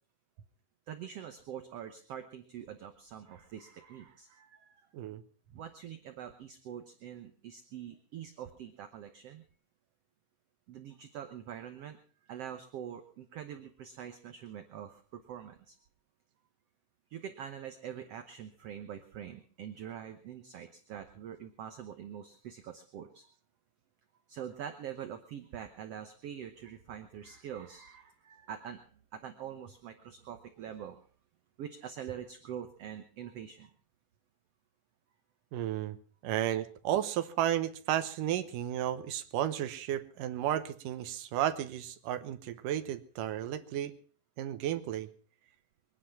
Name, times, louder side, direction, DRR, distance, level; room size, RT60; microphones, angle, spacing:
voice 1, 0.9-4.9 5.5-9.4 10.7-12.0 12.2-15.8 17.1-23.3 24.3-31.0 31.6-33.7, right 9 dB, 65° right, 7 dB, 1.7 m, -44 dB
voice 2, 35.5-36.0 36.2-43.9 44.4-45.1, right 11 dB, 90° right, 11 dB, 2.6 m, -33 dB
23.0 x 10.0 x 5.8 m, 0.42 s
omnidirectional pair, 3.7 m